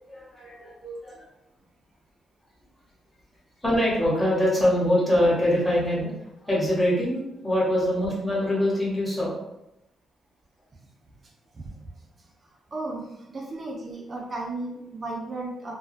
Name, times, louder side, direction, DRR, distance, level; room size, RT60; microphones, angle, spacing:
voice 1, 0.1-1.2 3.6-6.1 6.4-9.4, left 1 dB, 10° left, -7 dB, 0.8 m, -24 dB
voice 2, 11.2-11.7 12.2-12.3 12.7-15.7, right 2 dB, 25° right, -2 dB, 0.4 m, -35 dB
2.2 x 2.2 x 2.5 m, 0.89 s
cardioid pair, 155°, 0 cm